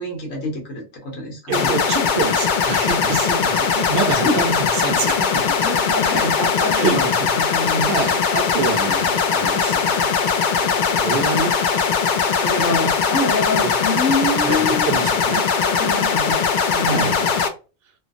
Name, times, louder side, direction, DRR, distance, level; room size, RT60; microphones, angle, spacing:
voice 1, 0.0-1.7 4.2-4.4 5.6-7.0 7.3-8.1 12.4-14.8 15.6-17.1, left 2 dB, 85° left, 1.4 m, -25 dB
sound 1, 1.5-17.5, left 6 dB, 65° left, 0.5 m, -20 dB
voice 2, 1.5-5.4 6.7-7.3 7.9-10.2 10.6-11.6 13.6-13.7 14.4-15.4 16.8-17.4, right 4 dB, 60° right, 0.8 m, -26 dB
3.1 x 2.0 x 2.4 m
omnidirectional pair, 1.3 m